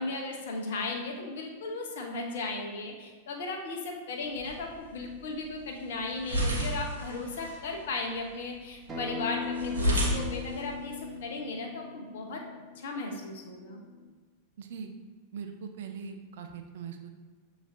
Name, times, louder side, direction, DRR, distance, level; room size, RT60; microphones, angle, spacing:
voice 1, 0.0-12.4 12.8-13.8, left 3 dB, 60° left, 2 dB, 0.7 m, -36 dB
sound 1, 4.2-11.2, equal, 75° right, 0.8 m, -34 dB
Acoustic guitar, 8.9-14.1, left 4 dB, 25° right, 0.7 m, -39 dB
voice 2, 14.6-14.9 15.3-17.1, right 6 dB, 55° right, 6 dB, 0.4 m, -41 dB
6.2 x 3.1 x 2.5 m, 1.4 s
figure-of-eight pair, 90°, 0 cm